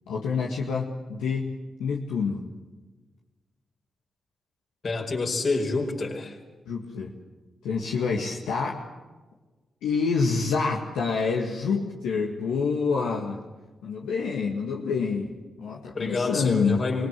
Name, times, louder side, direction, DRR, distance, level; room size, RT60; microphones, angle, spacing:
voice 1, 0.1-1.5 1.8-2.4 6.7-7.1 7.6-8.8 9.8-13.4 13.8-15.3 15.6-16.8, left 5 dB, 85° left, -2 dB, 2.0 m, -27 dB
voice 2, 4.8-6.4 15.9-17.1, left 3 dB, 55° left, 2 dB, 5.0 m, -28 dB
24.5 x 20.0 x 7.7 m, 1.2 s
supercardioid pair, 40°, 0 cm